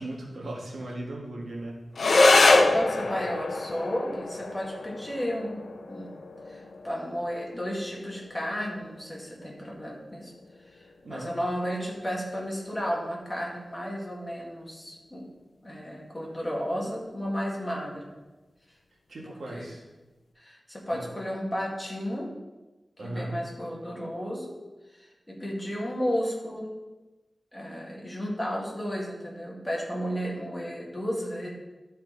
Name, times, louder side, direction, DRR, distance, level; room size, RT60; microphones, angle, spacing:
voice 1, 0.0-1.9 11.0-11.4 19.1-19.8 20.9-21.1 23.0-23.4, right 1 dB, 80° right, -2 dB, 1.7 m, -37 dB
sound 1, 1.9-10.9, left 3 dB, 75° left, 0.6 m, -26 dB
voice 2, 2.7-6.1 6.5-10.3 10.6-15.2 15.6-18.0 19.3-19.7 20.4-22.3 23.0-24.6 24.9-26.7 27.5-31.5, equal, 15° left, -3 dB, 2.1 m, -33 dB
12.5 x 4.3 x 4.1 m, 1.1 s
wide cardioid pair, 105°, 0 cm